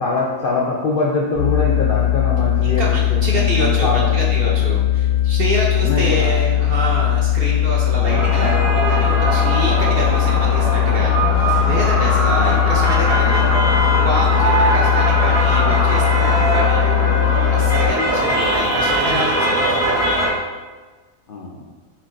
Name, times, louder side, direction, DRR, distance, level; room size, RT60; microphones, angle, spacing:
voice 1, 0.0-2.8 3.1-4.6 5.8-6.3 6.7-6.9 8.0-8.2 12.3-12.9 19.1-19.2 21.3-21.6, left 3 dB, 65° left, -3 dB, 0.5 m, -24 dB
sound 1, 1.3-17.9, left 13 dB, 85° right, 1.9 m, -18 dB
voice 2, 2.6-13.5 14.0-16.9 17.5-20.1, right 1 dB, 55° right, -3 dB, 0.7 m, -26 dB
sound 2, 8.1-20.3, right 1 dB, 15° left, 0.7 m, -20 dB
4.4 x 4.0 x 2.5 m, 1.3 s
omnidirectional pair, 1.5 m